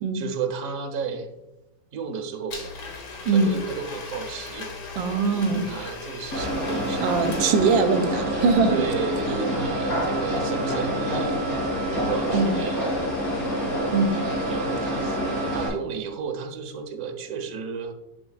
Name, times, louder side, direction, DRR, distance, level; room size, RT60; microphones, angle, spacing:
voice 1, 0.1-1.3 1.9-2.7 3.2-4.7 5.3-7.2 8.6-11.4 11.9-12.9 14.1-15.2 15.5-17.9, right 6 dB, 55° right, 3 dB, 1.2 m, -33 dB
Domestic sounds home sounds, 2.5-8.2, left 4 dB, 85° left, 2.1 m, -38 dB
voice 2, 5.0-5.6 7.0-8.7 9.3-9.4 12.3-12.5 13.9-14.2, right 4 dB, 75° right, 8 dB, 1.4 m, -22 dB
sound 1, 6.3-15.7, equal, 55° left, 3.3 m, -27 dB
8.0 x 7.1 x 2.4 m, 0.98 s
omnidirectional pair, 2.2 m